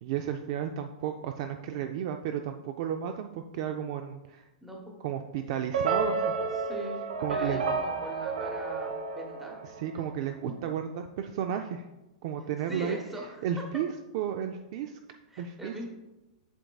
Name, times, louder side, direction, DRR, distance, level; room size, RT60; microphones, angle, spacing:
voice 1, 0.0-4.5 5.0-6.3 7.2-7.6 9.6-11.9 12.2-13.0 13.4-15.0 15.4-15.8, right 9 dB, 40° right, 6 dB, 0.3 m, -33 dB
voice 2, 4.6-4.9 6.6-7.0 7.3-9.6 12.7-13.4 15.3-15.8, right 1 dB, 5° right, 0 dB, 1.0 m, -41 dB
sound 1, 5.7-10.1, right 4 dB, 90° right, 1.0 m, -31 dB
7.9 x 6.0 x 2.3 m, 1.0 s
hypercardioid pair, 165°, 4 cm